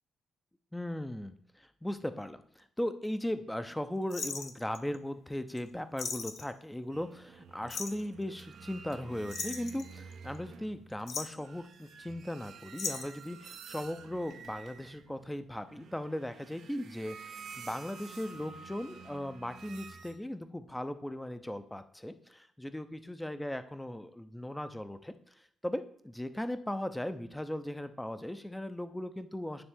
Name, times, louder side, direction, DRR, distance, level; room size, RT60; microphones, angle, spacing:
voice 1, 0.7-25.1 25.6-29.6, left 1 dB, 5° left, 10 dB, 0.6 m, -38 dB
sound 1, 4.1-5.0 5.6-5.7 6.0-6.5 7.7-8.1 9.3-10.4 10.9-11.5 12.7-13.3 14.3-14.7 14.9-15.0, left 5 dB, 55° left, 0.7 m, -38 dB
sound 2, 6.9-20.2, right 5 dB, 70° right, 0.6 m, -50 dB
9.7 x 3.3 x 3.6 m, 0.69 s
cardioid pair, 90°, 0 cm